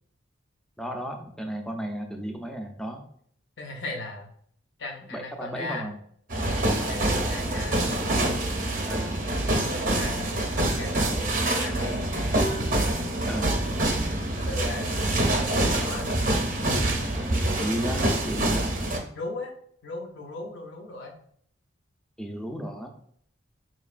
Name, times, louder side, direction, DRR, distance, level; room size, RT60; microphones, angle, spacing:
voice 1, 0.8-3.0 5.1-6.0 8.9-9.2 13.3-13.5 17.6-18.7 22.2-22.9, equal, 5° left, 4 dB, 0.3 m, -33 dB
voice 2, 3.6-4.3 4.8-5.9 6.9-7.8 9.4-12.1 14.4-16.1 19.1-19.5 19.8-21.2, left 2 dB, 60° left, 3 dB, 0.6 m, -37 dB
sound 1, 6.3-19.0, right 1 dB, 40° right, 0.6 m, -26 dB
4.3 x 3.0 x 2.4 m, 0.64 s
head